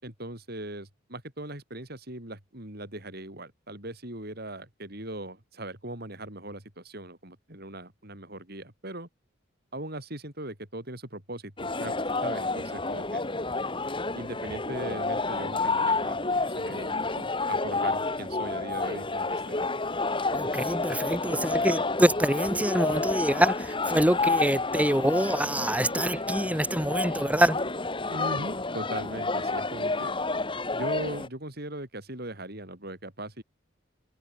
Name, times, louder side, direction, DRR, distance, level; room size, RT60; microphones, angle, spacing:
voice 1, 0.0-9.1 9.7-12.0 12.2-13.2 14.1-19.8 28.1-30.1 30.7-33.4, right 1 dB, 50° right, 6.6 m, -39 dB
sound 1, 11.6-31.3, left 3 dB, 25° left, 2.1 m, -30 dB
voice 2, 20.3-27.6, right 1 dB, 5° right, 3.6 m, -25 dB
head